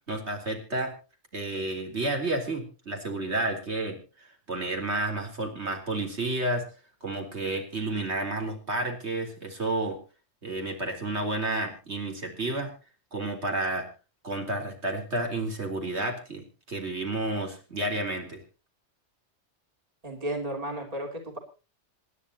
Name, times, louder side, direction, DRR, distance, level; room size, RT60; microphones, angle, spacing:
voice 1, 0.1-0.9 1.3-6.7 7.0-10.0 10.4-12.7 13.1-13.9 14.2-18.4, right 2 dB, 65° right, 2 dB, 4.0 m, -31 dB
voice 2, 20.0-21.4, right 1 dB, 30° right, 2 dB, 3.2 m, -33 dB
26.5 x 11.0 x 2.9 m, 0.33 s
omnidirectional pair, 1.2 m